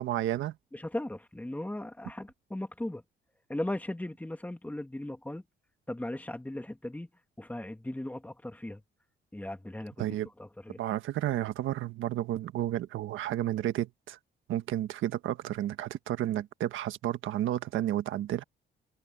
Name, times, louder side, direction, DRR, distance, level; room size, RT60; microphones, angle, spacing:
voice 1, 0.0-0.6 10.0-10.3 10.8-14.2 14.5-18.4, right 13 dB, 80° right, 1.4 m, -31 dB
voice 2, 0.7-3.0 3.5-5.4 5.9-7.1 7.4-8.8 9.3-10.8, left 1 dB, 10° left, 2.0 m, -37 dB
cardioid pair, 90°, 20 cm